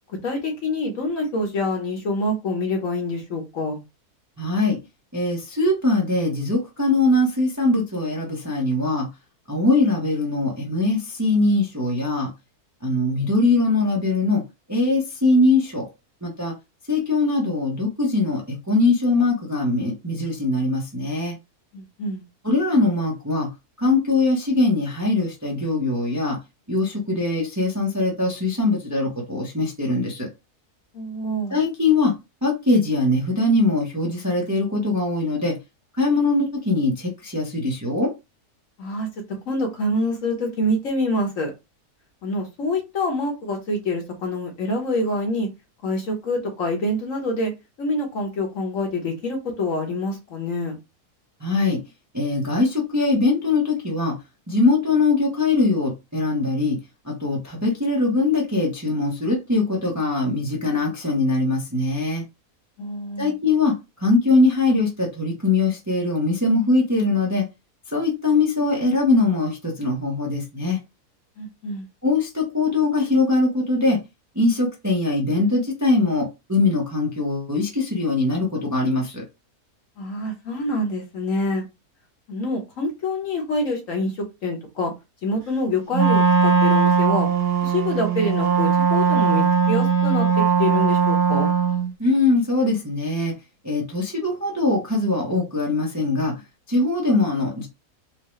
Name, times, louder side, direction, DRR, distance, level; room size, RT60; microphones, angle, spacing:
voice 1, 0.2-3.8 21.7-22.2 30.9-31.6 38.8-39.1 39.5-41.5 42.2-45.5 45.8-47.5 47.8-50.8 62.8-63.3 71.4-71.9 80.0-81.6 82.3-84.1 84.4-84.9 85.2-87.3 87.6-90.3 90.6-91.5, left 1 dB, 60° left, 2 dB, 1.4 m, -26 dB
voice 2, 4.4-4.8 5.1-9.1 9.5-12.3 12.8-14.4 14.7-15.9 16.2-16.5 16.9-21.3 22.4-23.5 23.8-26.4 26.7-30.3 31.5-32.1 32.4-35.6 36.0-38.1 51.4-51.8 52.1-54.2 54.5-56.8 57.0-62.2 63.2-63.7 64.0-67.4 67.9-70.8 72.0-74.0 74.3-79.2 92.0-93.3 93.6-96.3 96.7-97.7, left 2 dB, 15° right, -1 dB, 0.7 m, -21 dB
Wind instrument woodwind instrument, 85.9-91.9, right 6 dB, 45° right, 1.1 m, -19 dB
4.6 x 2.2 x 3.1 m, 0.24 s
omnidirectional pair, 1.6 m